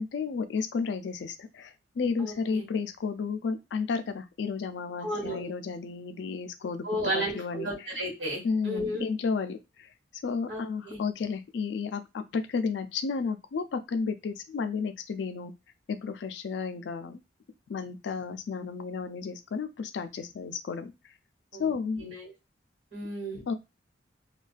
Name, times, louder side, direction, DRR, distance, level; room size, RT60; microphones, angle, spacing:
voice 1, 0.0-7.9 8.4-9.9 10.2-15.5 15.9-17.2 17.7-20.9 21.6-22.0 23.5-23.6, left 5 dB, 70° left, 9 dB, 0.4 m, -32 dB
voice 2, 2.2-2.6 5.0-5.5 6.8-9.1 10.5-11.0 21.5-22.3 22.9-23.4, equal, 90° right, -2 dB, 1.3 m, -34 dB
2.4 x 2.2 x 2.3 m, 0.24 s
head